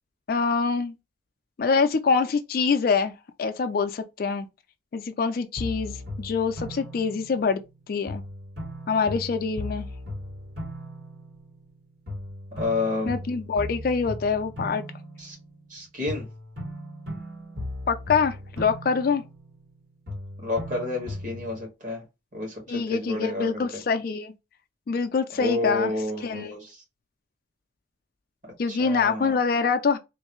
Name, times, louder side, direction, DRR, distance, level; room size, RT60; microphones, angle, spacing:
voice 1, 0.3-0.9 1.6-3.1 3.4-4.5 4.9-7.6 7.9-8.2 8.9-9.9 13.1-14.8 17.9-19.2 22.7-24.3 24.9-25.9 26.2-26.5 28.6-30.0, left 5 dB, 50° left, 0.3 m, -25 dB
sound 1, 5.6-7.7 8.1-11.8 12.1-15.7 16.1-19.8 20.1-21.6, left 1 dB, 60° right, 2.0 m, -37 dB
voice 2, 12.5-13.1 15.2-15.4 15.7-16.2 20.4-22.0 22.3-23.8 25.4-26.8 28.7-29.3, left 2 dB, 40° right, 1.7 m, -30 dB
3.1 x 2.6 x 3.0 m
head